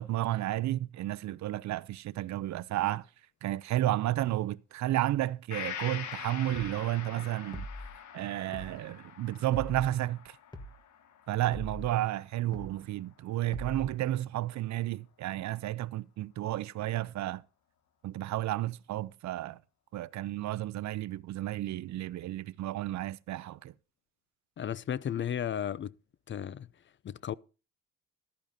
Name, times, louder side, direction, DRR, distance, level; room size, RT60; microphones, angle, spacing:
voice 1, 0.0-3.0 3.4-7.7 8.1-10.4 11.3-17.4 18.0-19.6 19.9-23.7, right 14 dB, 65° right, 0.5 m, -32 dB
Gong, 5.5-13.1 13.5-13.6, left 9 dB, 75° left, 1.4 m, -45 dB
sound 1, 6.5-6.8 7.5-7.9 8.5-8.8 9.5-9.9 10.5-10.8 11.5-11.9 12.5-12.8 13.5-13.9, equal, 15° left, 1.4 m, -41 dB
voice 2, 24.6-25.9 26.3-26.7 27.0-27.3, left 9 dB, 40° left, 0.4 m, -34 dB
14.0 x 12.0 x 2.7 m
cardioid pair, 90°, 30 cm